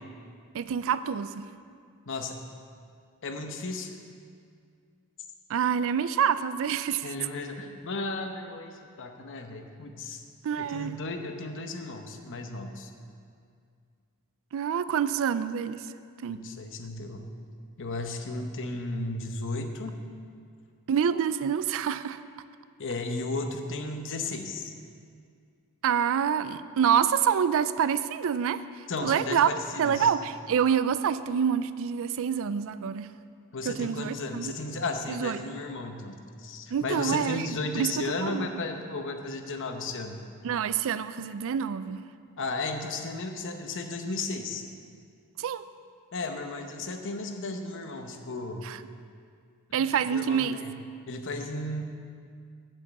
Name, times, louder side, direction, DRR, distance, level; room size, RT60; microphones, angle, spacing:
voice 1, 0.5-1.5 5.5-7.1 10.4-11.0 14.5-15.8 16.2-16.5 20.9-22.2 25.8-29.5 29.8-33.1 33.7-34.5 35.1-35.4 36.7-38.5 40.4-42.0 45.4-45.6 48.6-48.8 49.7-50.6, right 8 dB, 65° right, 14 dB, 0.4 m, -27 dB
voice 2, 2.1-2.4 3.2-3.9 7.0-10.2 10.6-12.9 16.3-17.3 17.8-20.0 22.8-24.7 28.9-30.1 33.5-40.2 42.4-44.6 46.1-48.7 49.7-50.7 51.1-51.8, left 3 dB, 60° left, 6 dB, 0.9 m, -34 dB
7.5 x 7.4 x 7.9 m, 2.2 s
head